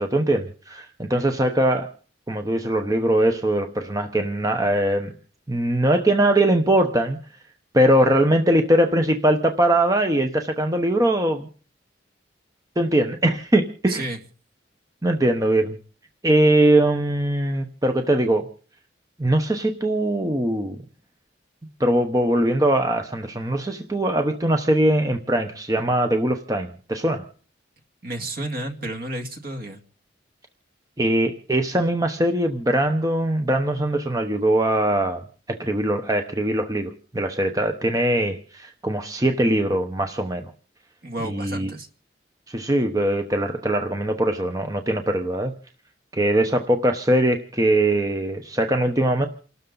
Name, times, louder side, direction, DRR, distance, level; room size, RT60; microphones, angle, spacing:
voice 1, 0.0-1.9 2.3-5.1 5.5-7.2 7.7-11.5 12.8-14.0 15.0-15.8 16.2-18.5 19.2-20.8 21.8-27.2 31.0-35.2 35.5-40.5 41.2-41.7 42.5-45.5 46.1-49.3, right 1 dB, 20° right, 5 dB, 0.9 m, -21 dB
voice 2, 13.9-14.2 28.0-29.8 41.0-41.9, right 1 dB, 50° right, 5 dB, 2.1 m, -31 dB
29.0 x 12.5 x 4.0 m, 0.41 s
head